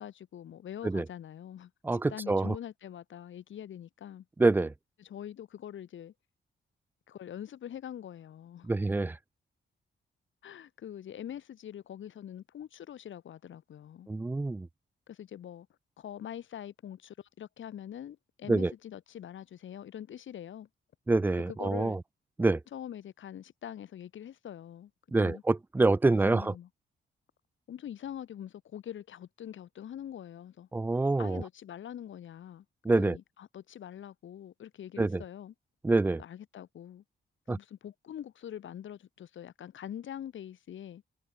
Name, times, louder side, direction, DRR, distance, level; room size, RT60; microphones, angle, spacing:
voice 1, 0.0-4.2 5.0-6.1 7.1-8.7 10.4-14.1 15.1-15.7 16.0-20.7 21.5-22.0 22.7-24.9 25.2-25.4 26.0-26.7 27.7-30.7 31.2-32.6 33.0-35.5 36.2-37.0 37.5-41.0, left 10 dB, 85° left, 3.3 m, -44 dB
voice 2, 1.8-2.5 4.4-4.7 8.7-9.2 14.1-14.7 18.5-18.7 21.1-22.0 22.4-22.6 25.1-26.5 30.7-31.4 32.9-33.2 35.0-35.2 35.8-36.2 37.5-37.6, right 2 dB, 10° right, 0.3 m, -26 dB
wide cardioid pair, 140°, 20 cm